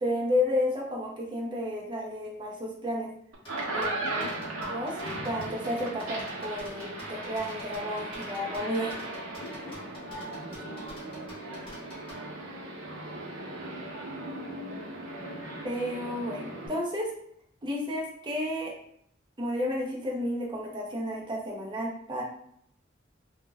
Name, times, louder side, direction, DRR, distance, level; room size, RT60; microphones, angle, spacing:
voice 1, 0.0-3.1 3.7-4.3 4.7-5.0 5.2-9.0 15.6-17.1 17.6-18.7 19.4-22.2, left 1 dB, 25° right, -2 dB, 0.5 m, -31 dB
sound 1, 3.3-16.7, right 2 dB, 85° right, 0.6 m, -37 dB
sound 2, 3.5-12.2, equal, 25° left, 0.8 m, -47 dB
voice 2, 4.0-4.5 9.4-9.8 10.1-10.8, left 2 dB, 60° left, 6 dB, 0.4 m, -46 dB
2.2 x 2.1 x 3.3 m, 0.69 s
head